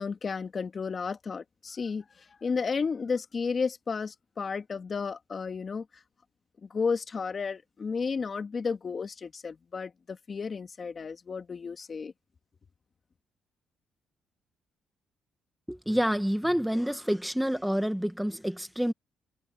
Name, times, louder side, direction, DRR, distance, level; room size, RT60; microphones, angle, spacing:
voice 1, 0.0-5.9 6.6-12.1, left 5 dB, 40° left, 2.1 m, -33 dB
voice 2, 15.7-18.9, equal, ahead, 1.5 m, -28 dB
cardioid pair, 90°, 0 cm